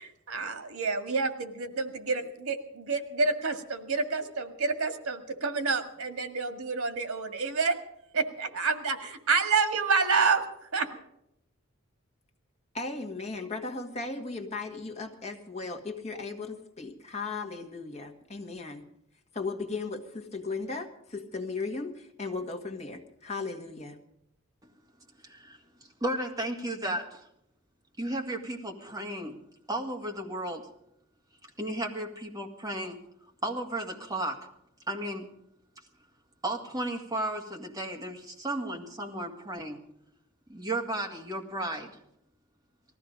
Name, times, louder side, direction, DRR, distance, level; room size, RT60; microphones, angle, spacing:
voice 1, 0.0-7.8 8.1-10.4 10.7-10.9, right 4 dB, 90° right, 8 dB, 1.8 m, -28 dB
voice 2, 12.7-18.8 19.3-24.0, left 3 dB, 30° left, 4 dB, 1.6 m, -36 dB
voice 3, 25.2-27.3 28.0-29.4 29.7-30.7 31.6-33.0 33.4-34.5 34.9-35.3 36.4-39.8 40.5-41.9, right 1 dB, 15° right, 0 dB, 2.0 m, -34 dB
19.5 x 14.5 x 5.1 m, 0.78 s
head